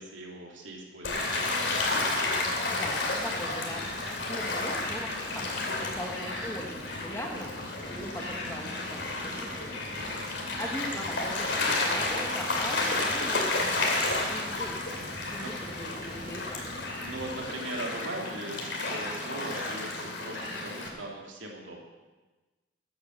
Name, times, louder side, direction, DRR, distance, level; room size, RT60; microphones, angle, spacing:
voice 1, 0.0-1.7 10.0-10.3 15.4-15.5 17.0-21.8, right 1 dB, 80° right, -1 dB, 2.9 m, -40 dB
Gull seagull / Waves surf, 1.0-20.9, left 2 dB, 70° left, 2.7 m, -31 dB
sound 1, 1.0-17.4, equal, 35° right, 4.4 m, -49 dB
voice 2, 2.7-5.5 5.8-15.0 15.3-16.7, equal, 15° left, 2 dB, 1.4 m, -41 dB
13.0 x 9.2 x 6.5 m, 1.2 s
head